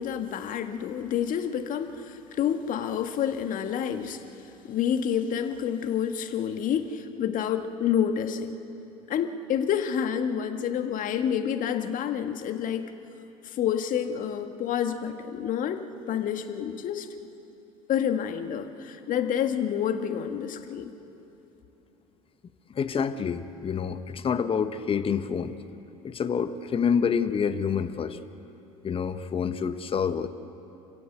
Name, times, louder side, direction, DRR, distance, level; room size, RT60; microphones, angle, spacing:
voice 1, 0.0-4.2 4.7-8.6 9.1-12.9 13.4-17.1 17.9-20.9, left 8 dB, 45° left, 7 dB, 1.8 m, -28 dB
voice 2, 22.7-25.5 26.0-28.2 28.8-30.3, left 6 dB, 30° left, 11 dB, 1.2 m, -27 dB
28.0 x 16.0 x 8.1 m, 2.9 s
figure-of-eight pair, 70°, 19 cm